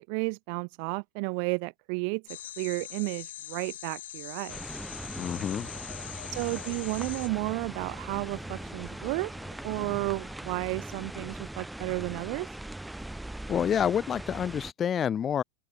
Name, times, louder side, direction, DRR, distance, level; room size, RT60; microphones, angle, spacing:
voice 1, 0.0-2.2 2.6-4.6 6.3-9.3 9.6-12.6, right 40 dB or more, 55° right, 0.5 m, -32 dB
sound 1, 2.3-7.3, left 12 dB, 80° left, 0.9 m, -42 dB
sound 2, 4.5-14.7, right 1 dB, 5° right, 1.1 m, -40 dB
voice 2, 5.2-5.7 13.5-15.4, left 8 dB, 25° left, 0.3 m, -28 dB
sound 3, 5.4-10.4, left 20 dB, 65° left, 7.9 m, -55 dB
open air
supercardioid pair, 125°, 0 cm